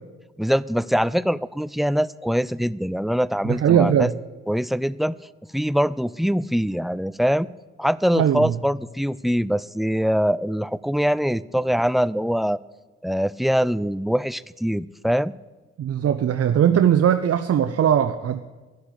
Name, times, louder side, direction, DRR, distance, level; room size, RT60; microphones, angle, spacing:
voice 1, 0.4-4.1 4.5-5.2 5.5-7.5 7.8-12.6 13.0-15.3, equal, ahead, 19 dB, 0.4 m, -23 dB
voice 2, 3.4-4.1 8.1-8.6 15.8-18.4, right 9 dB, 55° right, 9 dB, 0.8 m, -19 dB
11.5 x 11.0 x 8.3 m, 1.2 s
supercardioid pair, 50°, 30 cm